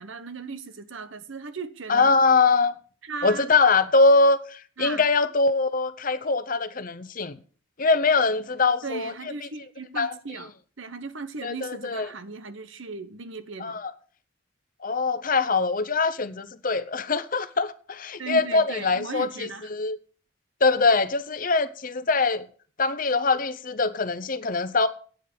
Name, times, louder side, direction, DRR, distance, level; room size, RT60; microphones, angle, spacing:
voice 1, 0.0-2.1 3.0-3.6 4.8-5.1 8.8-13.8 18.2-19.7, right 4 dB, 65° right, 1.0 m, -37 dB
voice 2, 1.9-2.7 3.2-7.4 7.8-9.1 10.0-10.1 11.4-12.1 13.6-13.9 14.8-20.0 20.6-22.4 22.8-24.9, left 3 dB, 40° left, 0.7 m, -23 dB
9.1 x 7.2 x 8.4 m
head